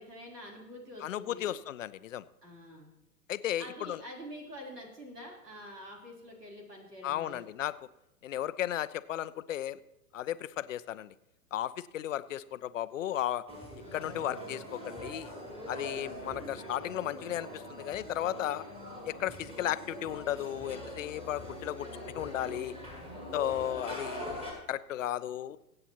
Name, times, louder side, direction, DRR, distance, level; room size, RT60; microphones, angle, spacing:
voice 1, 0.0-1.5 2.4-2.9 3.6-7.5 23.4-23.8, equal, 85° right, 0 dB, 3.6 m, -47 dB
voice 2, 1.0-2.2 3.3-4.0 7.0-7.7 8.2-9.8 10.1-11.1 11.5-13.4 13.9-15.3 15.7-18.6 19.1-22.7 23.3-25.6, left 12 dB, 55° left, 16 dB, 0.6 m, -35 dB
sound 1, 13.5-24.5, equal, 10° right, 2.9 m, -43 dB
22.5 x 8.8 x 2.9 m, 0.90 s
figure-of-eight pair, 110°, 46 cm